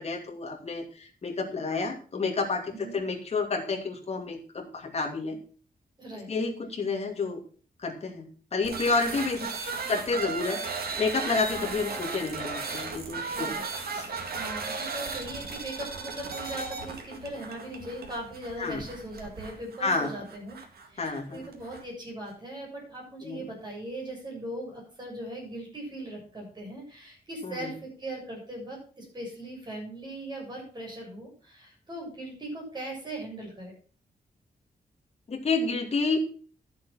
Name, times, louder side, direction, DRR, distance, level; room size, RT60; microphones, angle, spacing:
voice 1, 0.0-5.4 6.3-7.4 7.8-9.5 9.9-13.5 13.9-14.0 18.6-18.8 19.8-20.2 21.0-21.5 23.2-23.5 27.4-27.7 35.3-36.2, left 4 dB, 40° left, 1 dB, 2.6 m, -30 dB
voice 2, 6.0-6.3 9.0-9.1 13.3-13.7 14.4-20.6 20.9-33.7, right 1 dB, 30° right, -2 dB, 6.9 m, -39 dB
sound 1, 8.6-21.8, right 4 dB, 80° right, 2.1 m, -36 dB
11.5 x 7.5 x 6.0 m, 0.41 s
wide cardioid pair, 165°, 16 cm